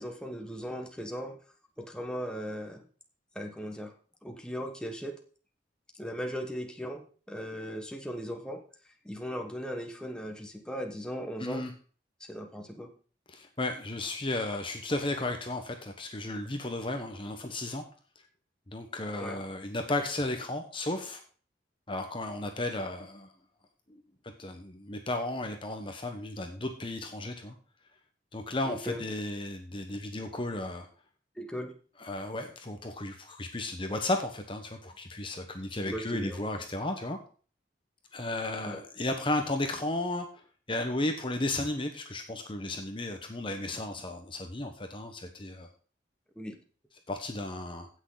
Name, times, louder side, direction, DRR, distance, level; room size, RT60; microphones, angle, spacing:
voice 1, 0.0-1.4 1.8-2.8 3.3-3.9 4.2-5.2 6.0-8.6 9.0-11.6 12.3-12.9 19.2-19.4 28.7-29.0 31.4-31.7 35.8-36.4 38.6-38.8 46.4-46.6, equal, 5° left, 3 dB, 1.4 m, -38 dB
voice 2, 11.4-11.7 13.3-17.8 18.7-21.2 21.9-23.3 24.4-27.5 28.3-30.9 32.0-37.2 38.1-40.3 40.7-45.7 47.1-47.9, left 2 dB, 30° left, 5 dB, 1.1 m, -34 dB
16.0 x 6.4 x 4.0 m, 0.40 s
head